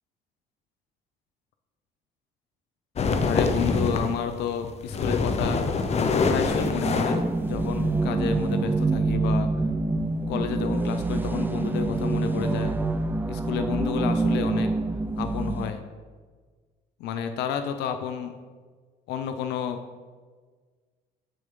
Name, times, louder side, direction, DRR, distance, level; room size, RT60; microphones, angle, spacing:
sound 1, 3.0-4.2 4.6-8.0, left 4 dB, 40° left, 0.9 m, -25 dB
voice 1, 3.2-5.7 6.2-9.5 10.3-12.8 13.3-14.7 15.2-15.8 17.0-18.3 19.1-19.8, left 7 dB, 85° left, 8 dB, 0.8 m, -30 dB
sound 2, 6.5-15.7, right 3 dB, 10° right, 0.5 m, -26 dB
14.0 x 6.7 x 3.9 m, 1.5 s
cardioid pair, 110°, 17 cm